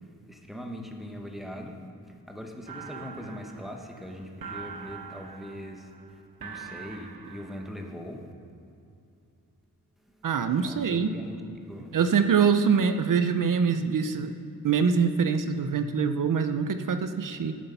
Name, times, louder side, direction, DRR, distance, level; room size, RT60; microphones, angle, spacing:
voice 1, 0.0-8.3 10.5-11.9, equal, ahead, 2 dB, 1.0 m, -41 dB
sound 1, 2.7-7.9, right 6 dB, 80° right, 0.9 m, -43 dB
voice 2, 10.2-11.1 11.9-14.3 14.6-17.5, right 6 dB, 60° right, 9 dB, 0.6 m, -24 dB
12.0 x 7.5 x 5.6 m, 2.6 s
wide cardioid pair, 160°, 36 cm